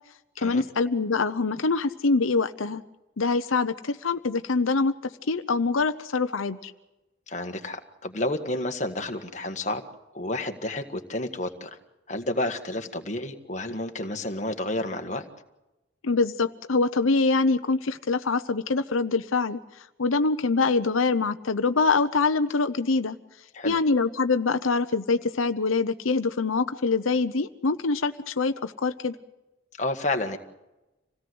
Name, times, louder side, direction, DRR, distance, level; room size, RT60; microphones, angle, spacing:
voice 1, 0.4-2.8 3.2-4.9 5.3-6.7 16.0-19.6 20.0-23.2 23.6-29.2, left 4 dB, 90° left, 9 dB, 0.8 m, -24 dB
voice 2, 7.3-9.8 10.1-11.7 12.1-15.2 23.5-23.8 29.8-30.4, left 1 dB, 35° left, 5 dB, 1.7 m, -30 dB
27.0 x 17.5 x 7.9 m, 1.0 s
head